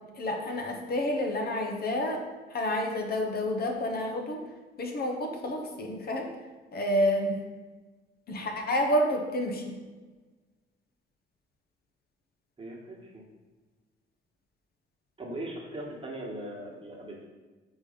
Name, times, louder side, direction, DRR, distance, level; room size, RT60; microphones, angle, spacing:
voice 1, 0.1-2.2 2.5-4.4 4.8-6.3 6.7-7.4 8.3-9.7, left 1 dB, 50° left, 2 dB, 0.9 m, -29 dB
voice 2, 12.6-13.2 15.2-17.2, right 1 dB, 25° right, -2 dB, 1.5 m, -39 dB
4.8 x 4.2 x 5.1 m, 1.3 s
cardioid pair, 90°, 20 cm